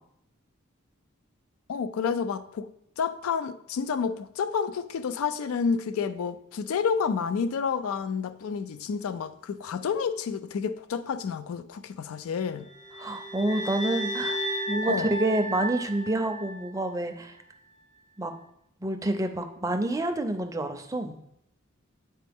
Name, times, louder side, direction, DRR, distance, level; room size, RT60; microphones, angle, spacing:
voice 1, 1.7-2.7 3.0-12.7 14.9-15.1, left 6 dB, 85° left, 0.4 m, -29 dB
sound 1, 12.7-17.0, equal, 35° left, 0.7 m, -33 dB
voice 2, 13.0-14.4 14.7-17.3 18.2-18.3 18.8-21.2, right 1 dB, 15° right, 0.5 m, -28 dB
9.3 x 4.1 x 3.5 m
head